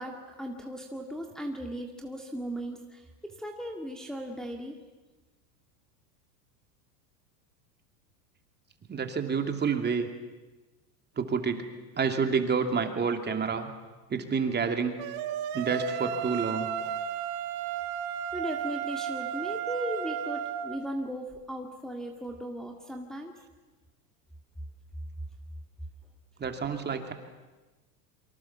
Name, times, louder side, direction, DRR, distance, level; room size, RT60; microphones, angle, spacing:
voice 1, 0.0-4.8 18.3-23.3, equal, ahead, 1 dB, 2.0 m, -37 dB
voice 2, 8.9-10.1 11.2-11.6 12.0-13.7 14.1-14.9 15.5-16.7 26.4-27.1, right 5 dB, 20° right, 6 dB, 2.7 m, -28 dB
sound 1, 15.0-20.8, right 9 dB, 50° right, 2.2 m, -33 dB
28.0 x 24.5 x 7.2 m, 1.2 s
hypercardioid pair, 115°, 50 cm